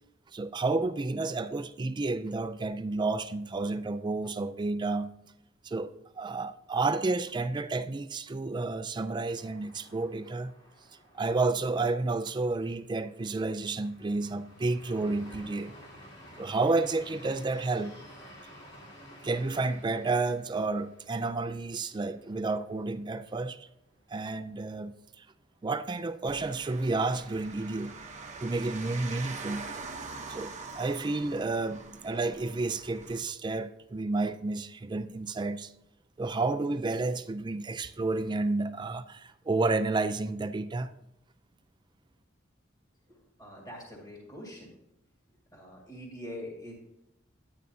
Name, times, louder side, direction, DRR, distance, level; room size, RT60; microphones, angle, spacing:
voice 1, 0.3-5.1 5.6-10.5 11.1-15.7 16.4-17.9 19.2-23.7 24.1-25.3 25.6-27.9 28.4-29.7 30.3-35.7 36.2-40.9, right 3 dB, 25° right, 0.4 m, -31 dB
sound 1, 9.3-23.1 23.4-23.5 23.9-24.4, equal, 65° left, 2.2 m, -53 dB
sound 2, 26.3-33.2, right 4 dB, 40° right, 0.9 m, -43 dB
voice 2, 43.1-44.7 45.5-46.7, left 1 dB, 20° left, 2.1 m, -44 dB
10.5 x 8.7 x 2.7 m
head